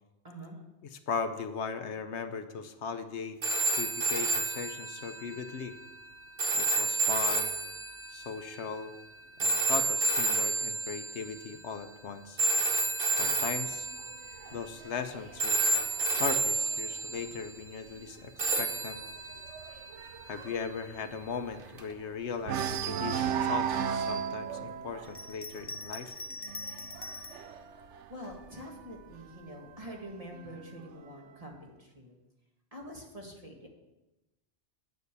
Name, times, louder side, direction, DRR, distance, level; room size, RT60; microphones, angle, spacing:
voice 1, 0.2-0.6 28.1-32.1 32.7-33.7, equal, 30° right, 0 dB, 1.9 m, -45 dB
voice 2, 0.9-3.4 3.7-5.8 6.5-7.5 8.1-8.9 9.4-12.4 13.2-13.9 14.5-15.6 16.1-19.0 20.2-26.1, left 5 dB, 75° left, 9 dB, 1.1 m, -38 dB
sound 1, 3.4-11.6 12.4-15.1 15.4-17.5 18.4-20.6 21.8-21.9, right 2 dB, 50° right, 1.2 m, -31 dB
sound 2, 13.7-17.3 17.7-18.0 18.3-18.4 18.8-22.0 22.4-28.9 29.8-30.8, right 8 dB, 80° right, 1.0 m, -36 dB
Bell, 25.0-27.5 28.2-29.2, left 2 dB, 30° left, 0.5 m, -43 dB
9.5 x 6.5 x 8.1 m, 1.0 s
omnidirectional pair, 1.2 m